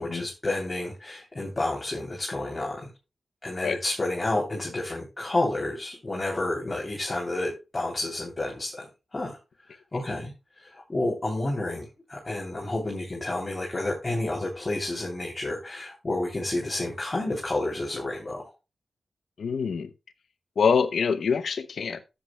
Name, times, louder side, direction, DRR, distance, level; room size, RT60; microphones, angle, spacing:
voice 1, 0.0-2.9 3.4-8.9 9.1-9.4 9.7-18.4, left 2 dB, 30° left, -3 dB, 3.2 m, -30 dB
voice 2, 19.4-19.9 20.6-22.0, left 6 dB, 85° left, 12 dB, 0.8 m, -25 dB
13.0 x 8.2 x 2.3 m, 0.26 s
wide cardioid pair, 75°, 0 cm